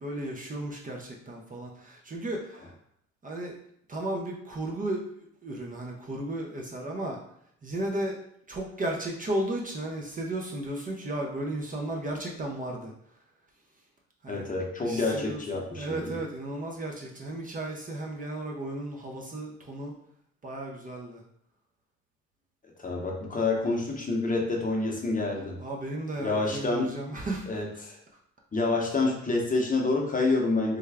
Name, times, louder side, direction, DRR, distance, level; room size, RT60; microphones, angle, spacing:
voice 1, 0.0-2.7 3.2-3.6 3.9-7.2 7.6-8.2 8.5-12.9 14.2-14.5 14.8-19.9 20.4-21.2 25.6-27.5, right 1 dB, 25° right, -1 dB, 0.5 m, -34 dB
voice 2, 14.3-16.2 22.8-25.6 26.2-26.9 27.5-28.0 28.5-30.8, left 3 dB, 25° left, 0 dB, 0.8 m, -28 dB
3.4 x 2.2 x 3.4 m, 0.71 s
cardioid pair, 90°, 30 cm